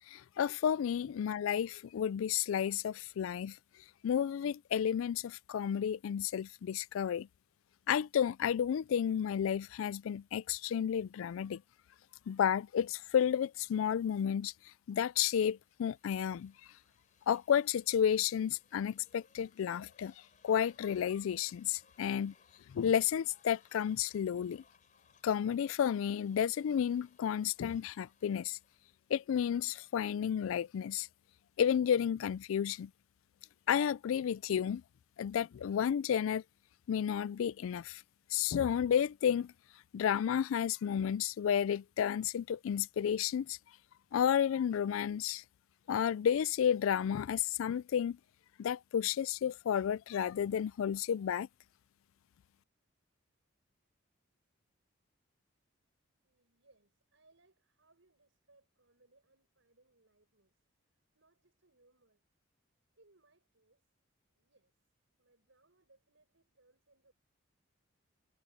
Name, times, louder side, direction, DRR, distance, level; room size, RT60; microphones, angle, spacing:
voice 1, 0.1-3.6 4.0-7.3 7.9-11.6 12.3-14.5 14.9-16.5 17.3-20.1 20.4-22.3 22.7-24.6 25.2-28.6 29.1-31.1 31.6-32.9 33.7-34.8 35.2-36.4 36.9-38.0 38.3-39.5 39.9-43.6 44.1-45.4 45.9-48.2 48.6-51.5, left 8 dB, 80° left, 0.3 m, -32 dB
sound 1, 15.5-29.1, left 5 dB, 40° left, 4.6 m, -69 dB
voice 2, 56.2-60.6 61.1-62.3 63.0-63.9 64.4-64.8 65.2-67.1, right 2 dB, 70° right, 5.5 m, -69 dB
head